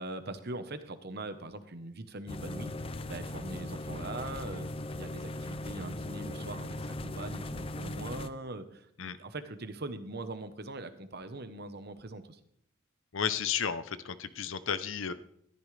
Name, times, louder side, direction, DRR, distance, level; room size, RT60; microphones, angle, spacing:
voice 1, 0.0-2.7 3.1-4.7 5.0-6.8 7.0-12.4, right 2 dB, 50° right, 10 dB, 1.1 m, -41 dB
sound 1, 2.3-8.3, left 1 dB, 25° left, 0.5 m, -38 dB
voice 2, 13.1-15.1, left 7 dB, 70° left, 13 dB, 0.7 m, -33 dB
14.0 x 13.5 x 3.4 m, 0.70 s
head